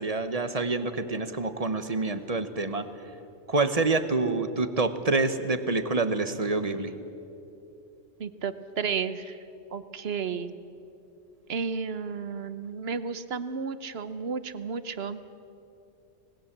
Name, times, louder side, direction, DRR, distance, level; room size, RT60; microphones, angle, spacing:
voice 1, 0.0-2.9 3.5-6.9, right 3 dB, 35° right, 10 dB, 1.1 m, -27 dB
voice 2, 8.2-9.4 9.7-10.5 11.5-15.2, right 5 dB, 65° right, 12 dB, 1.1 m, -32 dB
26.0 x 19.5 x 7.4 m, 2.8 s
omnidirectional pair, 1.2 m